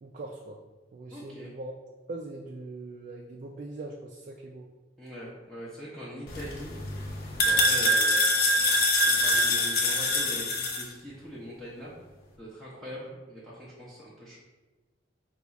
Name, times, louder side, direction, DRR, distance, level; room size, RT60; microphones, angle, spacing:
voice 1, 0.0-0.6 0.9-1.7 2.1-4.7, right 2 dB, 45° right, 0 dB, 0.3 m, -41 dB
voice 2, 1.1-1.5 5.0-6.7 7.4-8.2 9.0-11.9 12.4-14.4, equal, ahead, -9 dB, 0.7 m, -42 dB
sound 1, 6.3-10.8, left 1 dB, 55° left, 0.6 m, -24 dB
4.6 x 2.3 x 4.0 m, 1.2 s
head